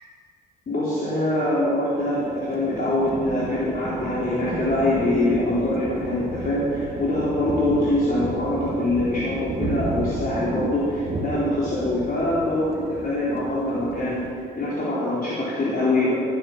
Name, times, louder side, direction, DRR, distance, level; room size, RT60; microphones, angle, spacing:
voice 1, 0.7-16.1, left 1 dB, 50° left, -8 dB, 3.9 m, -24 dB
Thunder, 2.0-14.3, right 2 dB, 30° right, 1.8 m, -33 dB
13.5 x 10.5 x 7.4 m, 2.3 s
cardioid pair, 90°, 20 cm